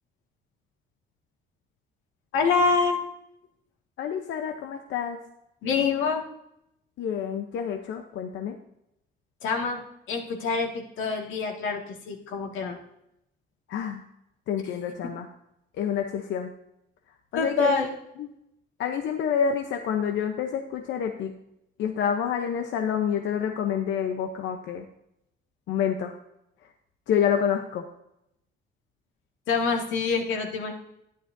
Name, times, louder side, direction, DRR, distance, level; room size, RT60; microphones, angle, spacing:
voice 1, 2.3-3.0 5.6-6.2 9.4-9.8 10.1-12.8 15.0-15.1 17.3-17.9 29.5-30.7, left 4 dB, 80° left, 1 dB, 2.0 m, -26 dB
voice 2, 4.0-5.2 7.0-8.6 13.7-14.0 14.5-15.3 15.8-16.5 17.3-17.8 18.2-18.3 18.8-21.3 21.8-24.8 25.7-26.1 27.1-27.9, left 8 dB, 65° left, 4 dB, 0.8 m, -28 dB
12.5 x 11.0 x 2.7 m, 0.80 s
cardioid pair, 160°, 20 cm